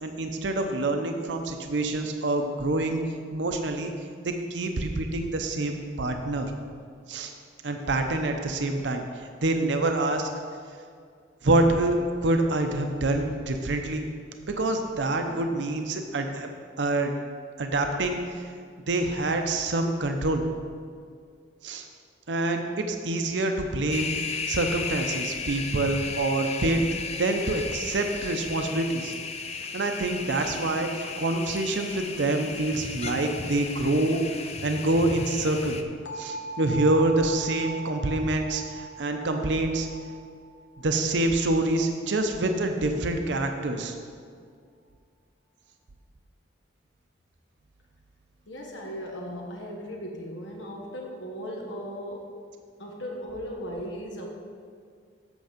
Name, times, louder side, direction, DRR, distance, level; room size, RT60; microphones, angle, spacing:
voice 1, 0.0-3.0 3.3-3.9 4.2-6.5 7.1-7.3 7.6-9.0 9.4-10.3 11.4-14.0 14.5-16.5 16.8-17.1 17.6-18.2 18.9-20.5 21.6-21.8 22.3-26.8 27.2-29.1 29.7-34.2 34.6-35.8 36.2-39.9 40.8-43.9, right 2 dB, 75° right, 5 dB, 0.7 m, -26 dB
sound 1, 23.9-35.8, left 5 dB, 35° left, 0.5 m, -35 dB
sound 2, 36.1-41.9, right 3 dB, 65° left, 1.0 m, -39 dB
voice 2, 48.5-52.4 52.8-54.3, equal, 90° left, 0 dB, 1.2 m, -37 dB
8.0 x 6.9 x 5.1 m, 2.1 s
head